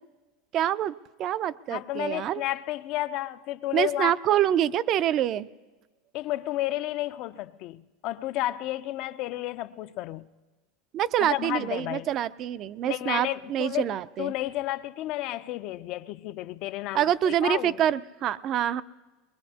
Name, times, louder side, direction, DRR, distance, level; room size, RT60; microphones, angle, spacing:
voice 1, 0.5-2.4 3.7-5.5 10.9-14.3 16.9-18.8, right 11 dB, 40° right, 0.4 m, -26 dB
voice 2, 1.7-4.1 6.1-10.3 11.2-12.1 12.9-13.9 14.2-17.8, left 15 dB, 55° left, 0.5 m, -32 dB
22.5 x 21.0 x 2.8 m
supercardioid pair, 130°, 0 cm